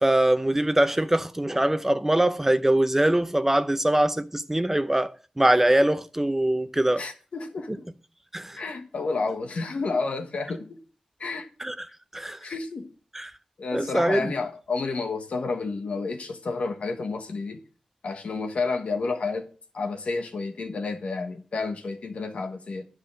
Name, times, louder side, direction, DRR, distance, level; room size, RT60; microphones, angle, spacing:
voice 1, 0.0-7.0 8.3-8.6 11.6-11.9 12.1-12.4 13.1-13.3 13.7-14.3, right 1 dB, 15° right, 0.7 m, -23 dB
voice 2, 7.0-7.9 8.6-10.8 11.2-11.5 12.4-12.9 13.6-17.6 18.0-19.5 19.7-22.8, left 4 dB, 85° left, 1.4 m, -30 dB
10.5 x 4.8 x 7.6 m
wide cardioid pair, 70°, 2 cm